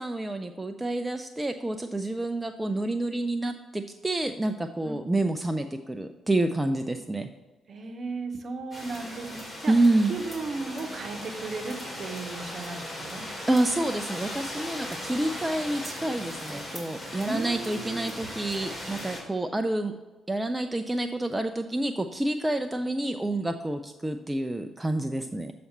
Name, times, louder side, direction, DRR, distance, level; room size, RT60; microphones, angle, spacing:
voice 1, 0.0-7.3 9.7-10.1 13.5-19.9 20.3-25.5, right 2 dB, 15° right, 6 dB, 0.4 m, -28 dB
voice 2, 7.7-9.7 10.1-13.2 17.2-18.1, right 3 dB, 45° right, 6 dB, 0.9 m, -36 dB
sound 1, 8.7-19.2, left 1 dB, 30° left, 2.4 m, -38 dB
7.0 x 4.2 x 5.4 m, 1.2 s
figure-of-eight pair, 40°, 0 cm